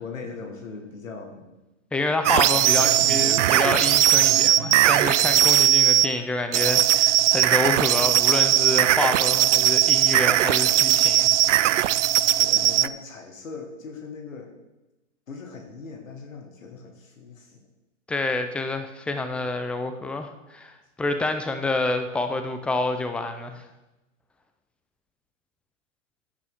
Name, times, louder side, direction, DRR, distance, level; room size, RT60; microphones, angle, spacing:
voice 1, 0.0-1.6 2.5-3.7 12.4-14.6 15.3-17.6, left 4 dB, 85° left, 3 dB, 1.8 m, -39 dB
voice 2, 1.9-11.3 18.1-23.7, left 2 dB, 5° left, 7 dB, 0.4 m, -28 dB
sound 1, 2.2-6.1 6.5-12.9, right 13 dB, 65° right, 0.5 m, -19 dB
12.0 x 9.2 x 3.6 m, 1.0 s
hypercardioid pair, 120°, 39 cm